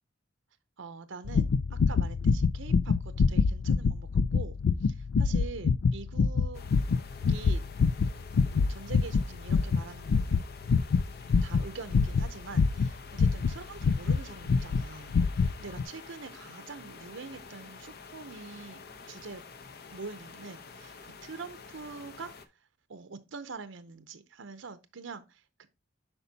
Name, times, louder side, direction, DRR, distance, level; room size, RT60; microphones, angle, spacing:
voice 1, 0.8-4.6 4.8-6.7 7.3-7.6 8.5-10.4 11.4-18.8 19.1-19.4 19.9-22.3 22.9-25.7, right 4 dB, 70° right, 0.7 m, -44 dB
sound 1, 1.3-14.2 14.5-14.8 15.1-15.5 15.8-15.9, left 5 dB, 75° left, 0.4 m, -25 dB
sound 2, 6.5-22.4, left 4 dB, 55° left, 0.8 m, -49 dB
8.1 x 5.6 x 2.7 m
head